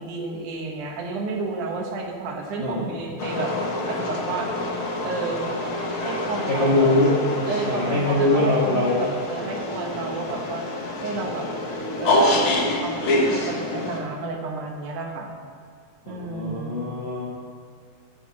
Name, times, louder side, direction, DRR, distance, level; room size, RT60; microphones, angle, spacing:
voice 1, 0.0-3.5 3.9-4.5 5.0-5.6 6.0-6.9 7.5-10.7 11.0-11.5 12.0-15.3 16.1-16.8, right 3 dB, 85° right, 1 dB, 2.7 m, -31 dB
voice 2, 2.6-3.0 6.5-7.2 7.7-9.1 16.0-17.3, left 2 dB, 75° left, -6 dB, 0.5 m, -22 dB
sound 1, 3.2-14.0, left 1 dB, 55° left, 1.6 m, -27 dB
11.0 x 4.6 x 7.1 m, 2.1 s
omnidirectional pair, 3.4 m